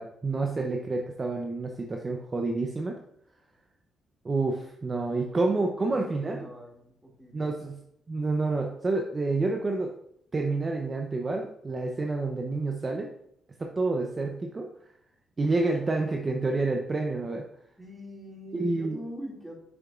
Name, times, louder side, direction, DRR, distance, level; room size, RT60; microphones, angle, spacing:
voice 1, 0.0-2.9 4.2-6.5 7.3-7.8 8.1-9.9 10.3-13.1 13.6-14.7 15.4-17.4 18.5-19.0, right 3 dB, 30° right, 2 dB, 0.7 m, -28 dB
voice 2, 5.2-7.6 17.8-19.5, equal, 5° right, -2 dB, 2.3 m, -44 dB
7.1 x 6.6 x 2.5 m, 0.73 s
cardioid pair, 90°, 0 cm